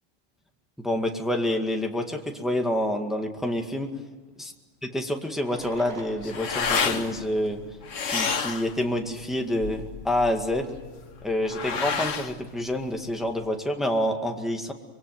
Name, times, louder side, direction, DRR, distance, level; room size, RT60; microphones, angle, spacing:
voice 1, 0.8-3.9 4.9-7.6 8.0-10.8 11.2-14.7, left 1 dB, ahead, 3 dB, 1.9 m, -27 dB
Fireworks, 1.8-1.9 4.2-4.3 5.3-9.1 9.8-9.9 10.1-10.2 10.4-10.5 11.0-11.3, right 2 dB, 55° right, 3.4 m, -43 dB
sound 1, 5.6-13.5, left 6 dB, 85° left, 1.6 m, -31 dB
25.5 x 23.0 x 9.4 m, 1.3 s
omnidirectional pair, 1.3 m